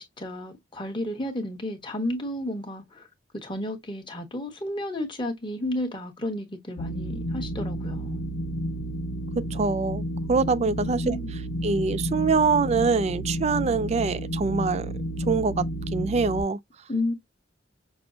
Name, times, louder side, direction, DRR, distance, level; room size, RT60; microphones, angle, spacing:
voice 1, 0.0-3.1 3.3-8.2 10.6-11.3 16.9-17.1, left 1 dB, 25° left, 1.2 m, -32 dB
sound 1, 6.8-16.4, equal, 60° left, 0.5 m, -31 dB
voice 2, 9.5-11.2 11.6-14.9 15.2-15.7 15.9-16.6, right 4 dB, 35° right, 0.4 m, -24 dB
6.0 x 2.1 x 2.5 m
head